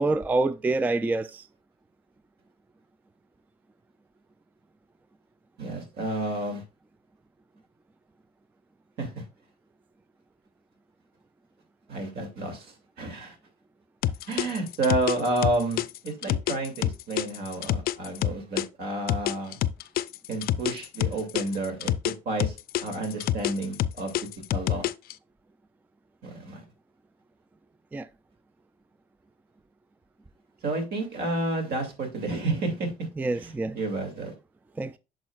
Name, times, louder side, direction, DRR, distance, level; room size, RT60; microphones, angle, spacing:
voice 1, 0.0-1.5 27.9-28.1 33.2-33.8 34.8-35.0, right 2 dB, 10° right, 0.3 m, -26 dB
voice 2, 5.6-6.6 9.0-9.2 11.9-13.3 14.3-19.6 20.3-22.5 22.8-24.1 24.5-24.9 26.2-26.6 30.6-32.9 33.4-34.3, right 2 dB, 70° right, 2.5 m, -30 dB
sound 1, 14.0-18.7 19.1-22.1 22.4-25.1, left 13 dB, 65° left, 0.5 m, -27 dB
8.9 x 6.4 x 2.4 m
cardioid pair, 110°, 17 cm